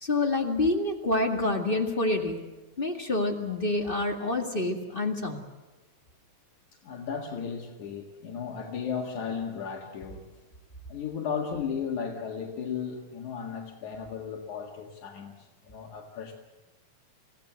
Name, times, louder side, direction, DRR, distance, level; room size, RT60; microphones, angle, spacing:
voice 1, 0.0-2.4 2.8-5.4, left 2 dB, 20° left, 2 dB, 1.8 m, -27 dB
voice 2, 6.8-10.2 10.9-16.3, left 6 dB, 80° left, 1 dB, 3.3 m, -35 dB
27.5 x 16.5 x 8.0 m, 1.1 s
omnidirectional pair, 3.4 m